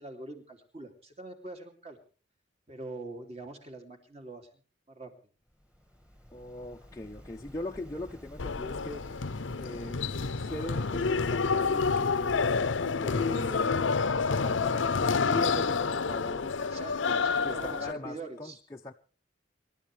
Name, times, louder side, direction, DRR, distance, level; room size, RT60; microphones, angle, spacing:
voice 1, 0.0-2.0 2.7-4.5 4.9-5.1 16.6-18.6, right 2 dB, 35° right, 2.8 m, -43 dB
Waves surf, 5.5-13.1, equal, 5° right, 1.9 m, -49 dB
voice 2, 6.3-9.1 9.6-10.0 10.4-12.4 13.0-13.8 14.2-16.6 17.1-18.9, left 1 dB, 15° left, 0.6 m, -40 dB
sound 1, 8.4-17.9, left 5 dB, 85° left, 0.7 m, -28 dB
27.0 x 12.5 x 3.4 m
head